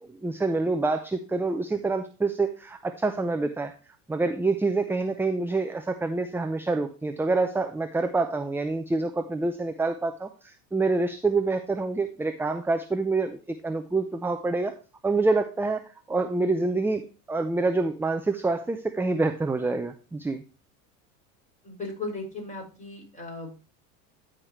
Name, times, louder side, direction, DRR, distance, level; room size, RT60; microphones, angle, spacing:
voice 1, 0.0-3.7 4.1-14.7 15.0-15.8 16.1-17.0 17.3-20.4, right 3 dB, 5° right, 7 dB, 0.6 m, -27 dB
voice 2, 21.6-23.6, left 3 dB, 15° left, -1 dB, 5.5 m, -37 dB
13.0 x 5.1 x 3.1 m, 0.35 s
hypercardioid pair, 95°, 42 cm